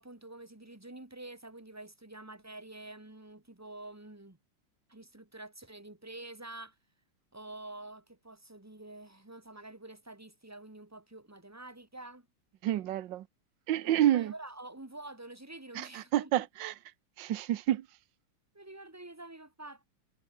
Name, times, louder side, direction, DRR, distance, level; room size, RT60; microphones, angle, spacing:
voice 1, 0.0-4.4 4.9-6.7 7.3-12.3 13.8-16.3 18.5-19.9, right 2 dB, 10° right, 1.9 m, -47 dB
voice 2, 12.6-13.3 13.7-14.3 15.7-16.7 17.2-17.9, right 12 dB, 65° right, 1.5 m, -29 dB
omnidirectional pair, 2.3 m